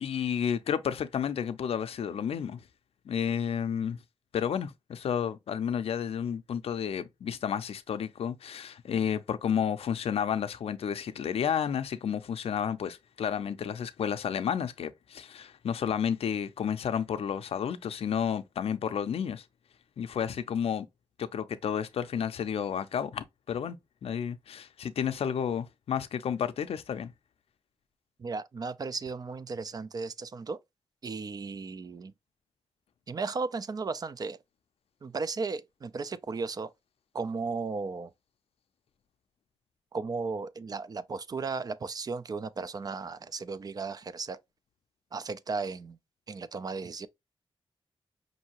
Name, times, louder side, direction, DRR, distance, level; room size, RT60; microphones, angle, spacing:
voice 1, 0.0-2.6 3.1-4.0 4.3-19.4 20.0-20.9 21.2-27.1, left 8 dB, 80° left, 0.4 m, -31 dB
voice 2, 28.2-30.6 31.0-32.1 33.1-34.4 35.0-36.7 37.1-38.1 39.9-44.4 45.1-46.0 46.3-47.1, right 4 dB, 40° right, 0.4 m, -35 dB
5.5 x 2.6 x 2.9 m
wide cardioid pair, 115°, 10 cm